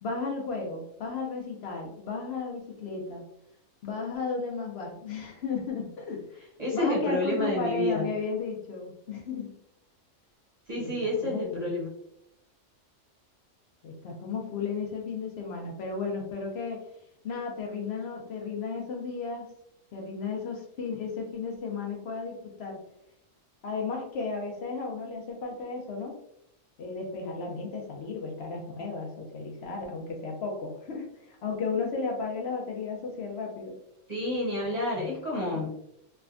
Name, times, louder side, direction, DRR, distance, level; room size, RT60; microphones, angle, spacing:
voice 1, 0.0-3.3 3.8-6.4 6.7-9.5 10.8-10.9 11.2-11.7 13.8-16.8 17.2-19.5 19.9-22.8 23.6-26.1 26.8-33.7 35.4-35.7, left 4 dB, 65° left, 0 dB, 0.8 m, -34 dB
voice 2, 6.6-8.0 10.7-11.9 34.1-35.7, left 1 dB, 40° right, -4 dB, 0.8 m, -29 dB
3.2 x 2.1 x 2.4 m, 0.77 s
omnidirectional pair, 1.3 m